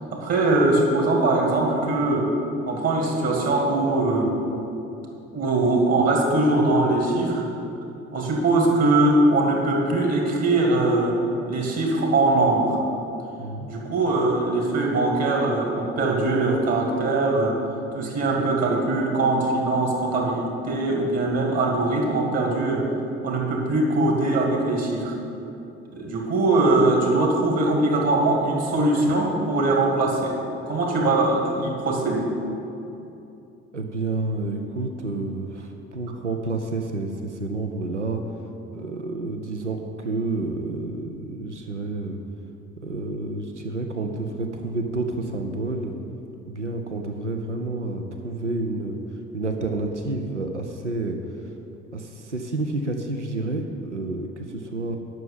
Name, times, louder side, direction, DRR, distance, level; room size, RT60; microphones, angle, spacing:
voice 1, 0.1-2.3 2.7-4.4 5.3-7.5 8.1-11.2 11.5-12.8 13.7-17.6 17.9-22.9 23.2-25.1 25.9-30.4 30.7-32.3, right 2 dB, 45° right, 0 dB, 2.4 m, -21 dB
voice 2, 33.7-38.2 38.7-42.2 42.8-45.9 46.5-49.0 49.3-51.2 51.9-55.0, right 2 dB, 90° right, 4 dB, 0.6 m, -29 dB
10.5 x 6.3 x 7.2 m, 2.8 s
figure-of-eight pair, 55°, 35 cm